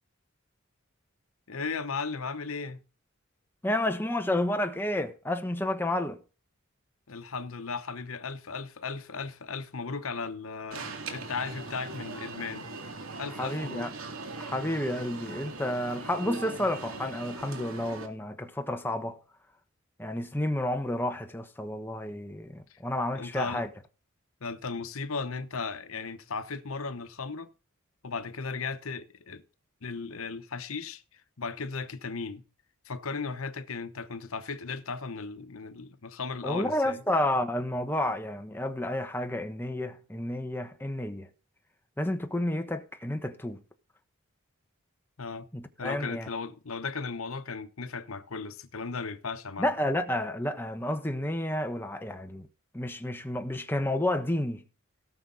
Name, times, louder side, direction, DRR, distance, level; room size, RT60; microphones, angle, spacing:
voice 1, 1.5-2.8 7.1-10.9 11.1-12.7 13.2-13.9 22.7-22.8 23.1-23.7 24.4-27.5 28.0-29.4 29.8-31.0 31.4-32.4 32.8-37.0 45.2-45.5 45.8-49.7, left 4 dB, 80° left, 1.0 m, -36 dB
voice 2, 3.6-6.2 13.4-13.9 14.4-19.2 20.0-23.7 36.4-41.3 42.0-43.6 45.5-46.3 49.6-52.5 52.7-54.6, left 1 dB, 10° left, 1.2 m, -30 dB
Alarm, 10.7-18.1, right 3 dB, 80° right, 2.2 m, -40 dB
18.0 x 6.5 x 3.9 m
head